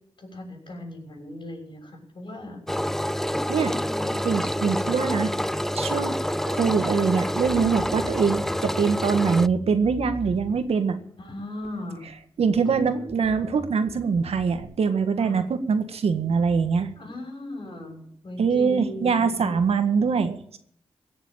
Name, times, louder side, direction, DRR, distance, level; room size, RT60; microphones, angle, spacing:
voice 1, 0.2-2.6 3.5-4.2 4.5-4.8 6.9-7.0 11.2-12.1 15.2-15.4 16.9-19.5, left 1 dB, 50° left, 2 dB, 6.6 m, -38 dB
Engine, 2.7-9.5, equal, 5° left, 0.5 m, -27 dB
voice 2, 4.2-5.3 5.7-6.2 6.5-11.0 12.4-16.9 18.4-20.6, right 5 dB, 75° right, 8 dB, 1.7 m, -23 dB
Bass guitar, 7.4-11.0 11.6-12.2 12.5-14.6, left 1 dB, 20° left, 2.9 m, -41 dB
17.0 x 7.3 x 8.6 m, 0.65 s
cardioid pair, 60°, 10 cm